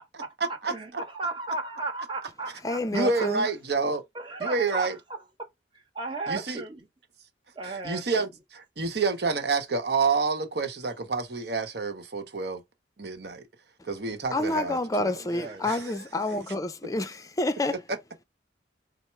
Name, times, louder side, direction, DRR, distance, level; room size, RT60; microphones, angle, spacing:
voice 1, 0.1-0.7 2.9-4.0 4.4-5.0 6.3-6.6 7.6-12.6 13.0-13.4 13.8-15.1 15.6-16.0 17.7-18.0, right 4 dB, 60° right, 1.0 m, -29 dB
voice 2, 0.7-3.3 4.1-5.5 5.7-6.9 7.5-8.3 15.2-15.6, right 3 dB, 25° right, 1.1 m, -35 dB
voice 3, 2.6-3.5 14.3-17.8, left 2 dB, 20° left, 0.5 m, -28 dB
4.3 x 2.1 x 4.5 m
head